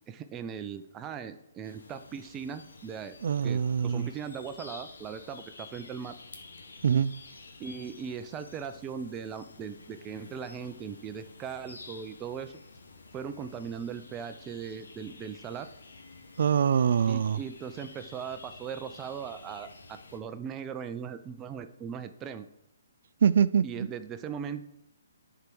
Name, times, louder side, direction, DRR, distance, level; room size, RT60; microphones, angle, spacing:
voice 1, 0.1-3.2 3.4-6.1 7.6-12.6 13.1-15.7 17.1-22.5 23.6-24.6, right 7 dB, 20° right, 0.7 m, -39 dB
sound 1, 1.6-20.2, left 3 dB, 85° left, 1.6 m, -50 dB
voice 2, 3.2-4.1 6.8-7.1 16.4-17.4 23.2-23.9, right 7 dB, 60° right, 0.4 m, -24 dB
10.5 x 4.8 x 6.1 m
hypercardioid pair, 150°, 0 cm